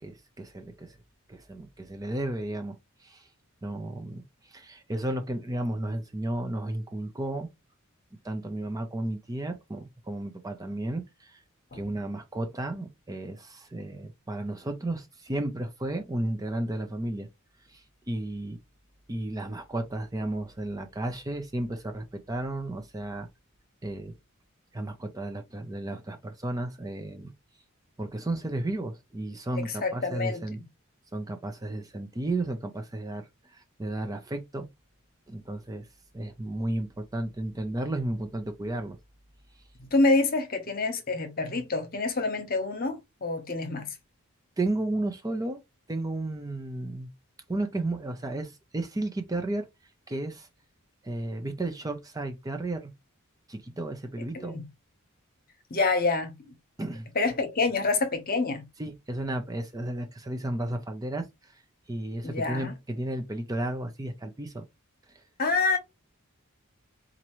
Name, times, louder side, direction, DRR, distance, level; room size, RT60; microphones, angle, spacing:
voice 1, 0.0-1.0 1.3-3.3 3.6-7.5 8.2-11.4 11.7-17.3 17.7-18.6 19.1-23.3 23.8-24.1 24.7-27.3 28.0-30.6 31.1-34.7 35.3-35.9 36.1-39.0 44.6-45.6 45.9-47.1 47.5-49.7 50.1-50.5 51.0-52.9 53.5-54.6 56.8-57.1 58.8-61.6 61.9-64.6 65.1-65.2, right 1 dB, 15° right, 0.5 m, -33 dB
voice 2, 29.6-30.4 39.9-43.9 54.3-54.6 55.7-56.5 57.1-58.6 62.2-62.7 65.4-65.8, left 3 dB, 45° left, 1.0 m, -27 dB
4.4 x 2.6 x 3.0 m
head